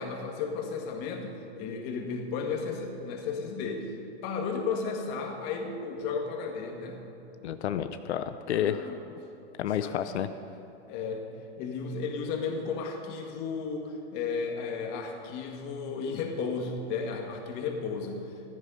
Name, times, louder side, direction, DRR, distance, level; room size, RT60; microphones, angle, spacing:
voice 1, 0.0-3.9 4.2-7.0 8.5-9.0 9.6-10.0 10.9-11.2 11.6-18.3, left 5 dB, 30° left, 3 dB, 1.8 m, -34 dB
voice 2, 7.4-8.9 9.6-10.3, left 10 dB, 85° left, 10 dB, 0.8 m, -30 dB
15.0 x 13.5 x 5.5 m, 2.9 s
supercardioid pair, 165°, 33 cm